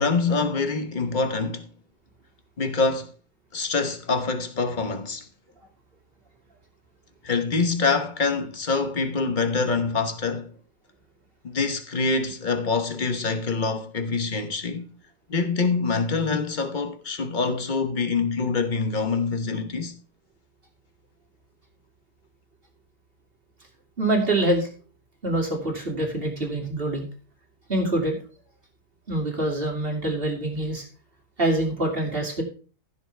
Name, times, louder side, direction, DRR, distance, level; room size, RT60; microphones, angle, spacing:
voice 1, 0.0-1.7 2.6-3.1 3.5-5.3 7.2-10.5 11.4-14.9 15.3-20.0, left 4 dB, 35° left, 1.1 m, -25 dB
voice 2, 24.0-24.7 25.2-27.0 27.7-28.2 29.1-30.9 31.4-32.4, right 1 dB, 35° right, 2.7 m, -25 dB
15.0 x 7.3 x 3.4 m
omnidirectional pair, 1.7 m